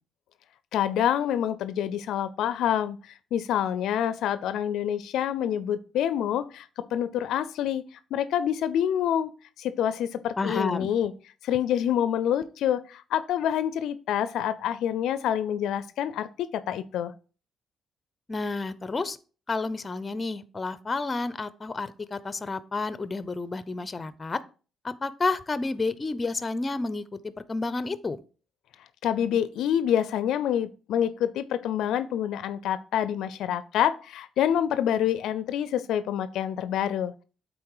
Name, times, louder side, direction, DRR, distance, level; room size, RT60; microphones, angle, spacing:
voice 1, 0.7-7.8 8.1-9.3 9.6-11.1 11.4-17.1 29.0-37.2, left 10 dB, 85° left, 14 dB, 0.4 m, -27 dB
voice 2, 10.4-10.9 18.3-19.2 19.5-24.4 24.8-28.2, left 3 dB, 30° left, 16 dB, 0.6 m, -30 dB
8.5 x 4.0 x 4.8 m, 0.36 s
cardioid pair, 90°, 0 cm